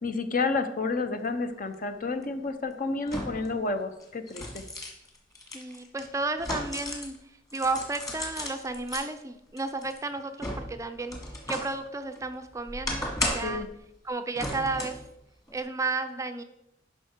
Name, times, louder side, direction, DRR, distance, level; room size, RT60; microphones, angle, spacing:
voice 1, 0.0-4.7 13.3-13.7, left 3 dB, 45° left, 8 dB, 0.8 m, -30 dB
sound 1, 1.7-1.8 3.1-3.6 4.0-7.2 7.5-9.0 9.6-11.8 12.2-13.6 14.3-15.1 15.5-15.6, left 1 dB, 20° left, 1.7 m, -35 dB
voice 2, 5.5-7.1 7.5-11.2 11.5-13.7 14.0-15.0 15.5-16.4, right 3 dB, 15° right, 8 dB, 0.5 m, -32 dB
11.5 x 5.6 x 4.5 m, 0.84 s
head